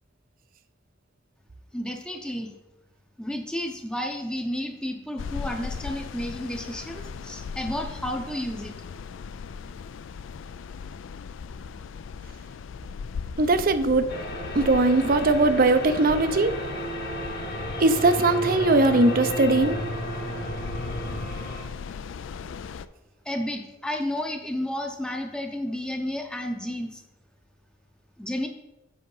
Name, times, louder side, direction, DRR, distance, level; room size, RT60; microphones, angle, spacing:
voice 1, 1.7-2.5 3.2-8.7 23.2-27.0 28.2-28.5, left 1 dB, 5° left, 3 dB, 0.7 m, -31 dB
sound 1, 5.2-22.9, left 5 dB, 65° left, 0.4 m, -38 dB
voice 2, 13.4-14.1 14.5-16.5 17.8-19.8, right 2 dB, 45° right, 11 dB, 0.5 m, -20 dB
sound 2, 14.1-21.6, right 1 dB, 50° left, 1.4 m, -32 dB
7.8 x 4.9 x 5.5 m, 0.93 s
head